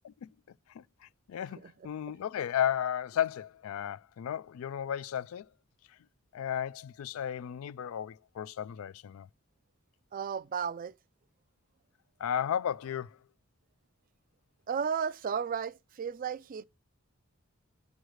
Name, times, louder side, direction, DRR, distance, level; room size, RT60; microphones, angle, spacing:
voice 1, 0.7-5.5 6.3-9.3 12.2-13.2, left 9 dB, 80° left, 0.3 m, -34 dB
voice 2, 10.1-10.9 14.7-16.6, right 7 dB, 40° right, 0.3 m, -34 dB
8.9 x 3.1 x 6.3 m
head